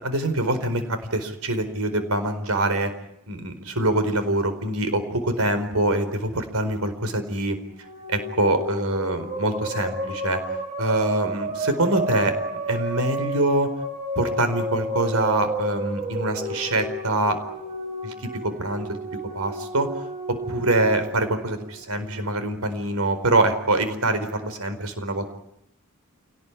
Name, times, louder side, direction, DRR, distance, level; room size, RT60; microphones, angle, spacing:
voice 1, 0.0-2.9 3.3-7.6 8.1-10.4 10.8-13.7 14.1-17.4 18.0-18.1 18.4-18.9 19.3-19.9 20.3-25.3, right 1 dB, 90° right, 9 dB, 4.6 m, -24 dB
sound 1, 7.7-22.2, right 2 dB, 30° right, 3.9 m, -32 dB
27.5 x 19.0 x 9.9 m, 0.80 s
head